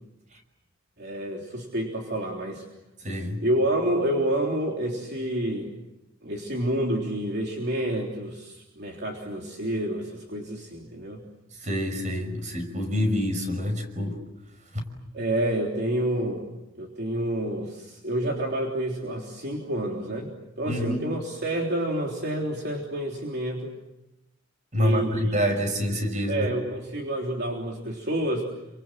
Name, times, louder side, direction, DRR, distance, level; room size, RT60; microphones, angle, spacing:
voice 1, 1.0-2.6 3.4-5.7 6.2-11.2 15.1-16.5 16.8-20.3 20.6-23.7 24.7-25.6 26.3-28.5, right 1 dB, 55° right, 0 dB, 3.5 m, -29 dB
voice 2, 3.0-3.4 11.6-14.2 14.7-14.8 20.7-21.1 24.7-26.5, equal, 40° right, 6 dB, 5.9 m, -27 dB
30.0 x 26.0 x 7.6 m, 0.91 s
head